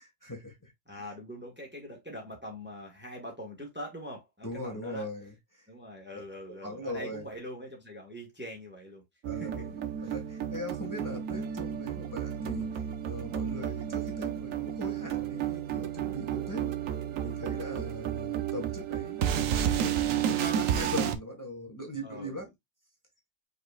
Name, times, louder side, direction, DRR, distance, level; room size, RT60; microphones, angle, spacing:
voice 1, 0.0-0.7 4.4-5.7 6.5-7.3 9.2-16.7 17.2-19.4 19.7-22.5, left 1 dB, 15° left, 1.6 m, -40 dB
voice 2, 0.9-5.1 5.7-9.0 9.3-9.7 10.0-10.1 18.3-18.5 22.0-22.4, equal, 10° right, 1.5 m, -43 dB
sound 1, 9.2-21.2, right 9 dB, 90° right, 1.1 m, -32 dB
5.2 x 4.0 x 2.3 m
omnidirectional pair, 1.3 m